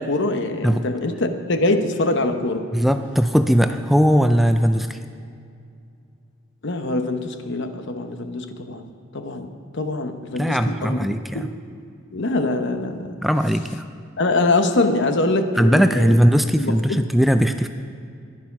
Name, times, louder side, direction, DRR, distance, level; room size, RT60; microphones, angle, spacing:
voice 1, 0.0-2.7 6.6-8.9 9.1-11.1 11.3-11.5 12.1-13.2 14.2-16.1 16.6-17.0, left 2 dB, 60° left, 7 dB, 0.9 m, -23 dB
voice 2, 2.7-5.0 10.4-11.5 13.2-13.8 15.6-17.7, equal, ahead, 8 dB, 0.3 m, -19 dB
14.5 x 11.0 x 5.9 m, 2.4 s
head